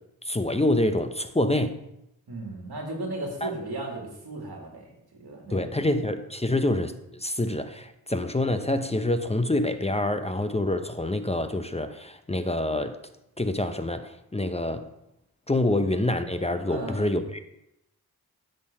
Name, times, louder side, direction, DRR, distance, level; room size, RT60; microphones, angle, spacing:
voice 1, 0.2-1.8 3.4-3.5 5.5-13.0 13.4-14.9 15.5-17.4, left 1 dB, 15° left, 8 dB, 0.6 m, -26 dB
voice 2, 2.3-4.8 5.1-5.8 15.7-15.8 16.7-17.1, right 2 dB, 80° right, 0 dB, 2.2 m, -36 dB
10.5 x 3.8 x 7.4 m, 0.84 s
wide cardioid pair, 60°, 38 cm